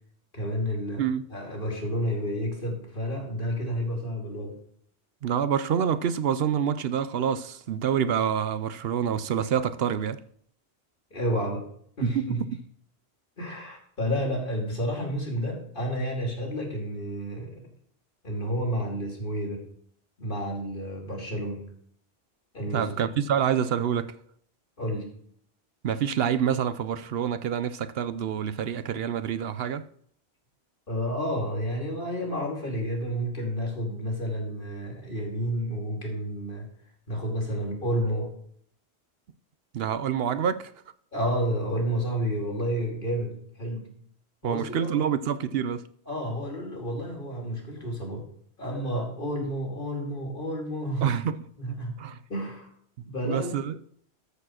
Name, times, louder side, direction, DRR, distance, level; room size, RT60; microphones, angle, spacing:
voice 1, 0.3-4.5 11.1-11.7 12.0-12.5 13.4-17.6 18.2-19.6 20.2-21.6 22.5-23.1 24.8-25.1 30.9-36.7 37.1-38.3 41.1-43.9 44.4-45.1 46.1-48.3 48.6-51.1 51.6-52.0 52.3-52.7 53.0-53.5, equal, 55° left, 2.9 m, -30 dB
voice 2, 5.2-10.2 12.0-12.6 22.7-24.2 25.8-29.8 39.7-40.7 44.4-45.8 51.0-51.5 52.0-52.2 53.2-53.8, right 8 dB, 70° right, 0.8 m, -27 dB
13.5 x 4.8 x 6.3 m
omnidirectional pair, 1.1 m